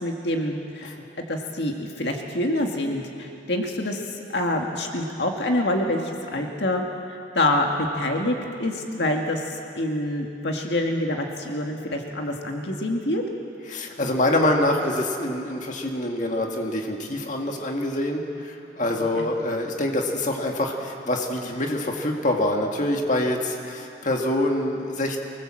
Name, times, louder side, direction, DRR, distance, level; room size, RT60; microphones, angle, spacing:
voice 1, 0.0-6.8 7.1-13.2 19.2-19.3, left 1 dB, 65° left, 2 dB, 1.8 m, -26 dB
voice 2, 13.7-25.2, left 1 dB, 45° left, 1 dB, 1.9 m, -25 dB
24.5 x 19.5 x 7.6 m, 2.6 s
head